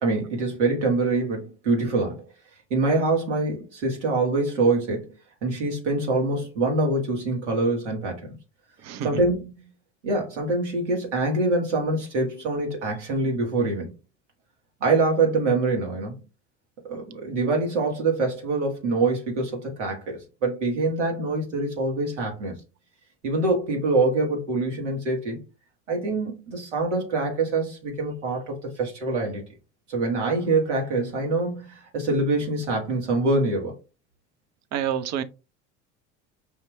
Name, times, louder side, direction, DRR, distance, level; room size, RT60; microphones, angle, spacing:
voice 1, 0.0-2.2 2.7-5.1 5.4-8.4 9.0-9.7 10.0-13.9 14.8-16.2 16.8-22.6 23.2-25.4 25.9-29.4 29.9-33.7, right 3 dB, 85° right, 1.7 m, -25 dB
voice 2, 34.7-35.2, right 9 dB, 50° right, 0.7 m, -27 dB
5.6 x 2.8 x 3.3 m
hypercardioid pair, 70°, 36 cm